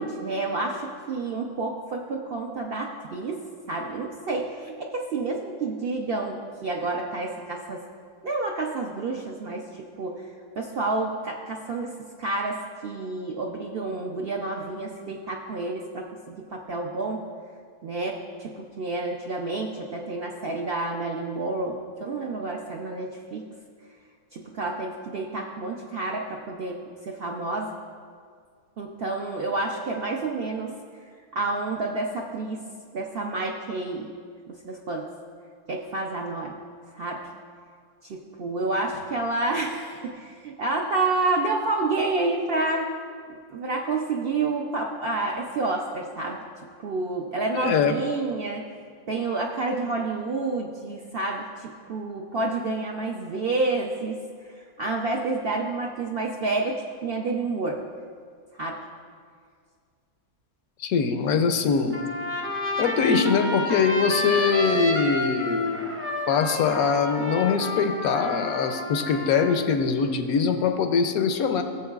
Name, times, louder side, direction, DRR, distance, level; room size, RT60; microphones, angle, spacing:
voice 1, 0.0-7.8 8.2-10.3 10.6-17.2 17.8-23.5 24.3-27.7 28.8-30.7 31.3-32.6 32.9-34.1 34.5-35.1 35.7-36.6 36.9-37.3 38.0-42.9 43.3-46.4 46.8-48.7 49.1-57.8 58.5-58.8, right 3 dB, 60° right, 1 dB, 0.6 m, -29 dB
voice 2, 47.5-48.0 60.8-62.0 62.8-65.9 66.3-71.6, left 5 dB, 75° left, 7 dB, 1.1 m, -23 dB
Trumpet, 61.9-69.6, left 1 dB, 20° right, 0.4 m, -30 dB
16.5 x 7.2 x 2.4 m, 2.1 s
omnidirectional pair, 1.5 m